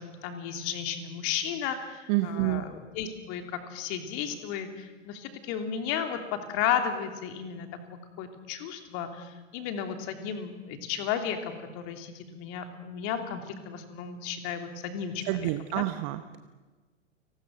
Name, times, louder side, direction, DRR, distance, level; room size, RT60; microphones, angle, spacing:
voice 1, 0.0-7.7 8.2-15.4 15.7-15.8, left 8 dB, 35° left, 6 dB, 3.0 m, -34 dB
voice 2, 2.1-2.6 15.3-16.4, right 17 dB, 35° right, 10 dB, 1.0 m, -28 dB
29.5 x 19.5 x 6.5 m, 1.3 s
figure-of-eight pair, 100°, 37 cm